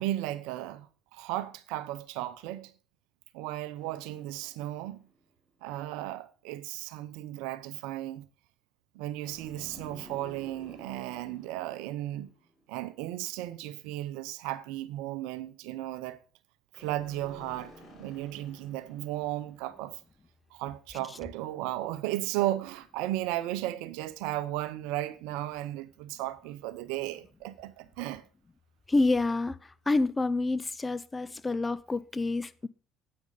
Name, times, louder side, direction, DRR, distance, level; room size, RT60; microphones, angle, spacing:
voice 1, 0.0-2.7 3.3-5.0 5.6-8.2 8.9-12.3 12.7-16.2 16.8-20.0 20.5-28.2, right 15 dB, 75° right, 0.7 m, -35 dB
sound 1, 3.8-5.3 9.3-13.0 16.7-20.1, equal, 40° left, 4.2 m, -53 dB
voice 2, 28.9-32.7, left 2 dB, 20° left, 0.5 m, -28 dB
9.5 x 8.6 x 3.9 m
hypercardioid pair, 65°, 0 cm